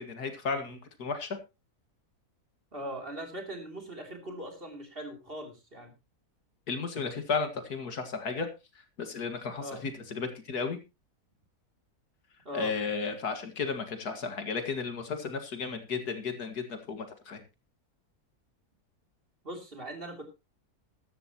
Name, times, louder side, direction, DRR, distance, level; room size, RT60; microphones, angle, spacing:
voice 1, 0.0-1.4 6.7-8.5 9.0-10.8 12.5-17.4, left 5 dB, 90° left, 7 dB, 2.4 m, -34 dB
voice 2, 2.7-5.9 9.6-9.8 12.4-12.7 19.4-20.2, right 1 dB, 35° right, 3 dB, 3.3 m, -40 dB
14.0 x 12.5 x 2.9 m, 0.26 s
omnidirectional pair, 1.6 m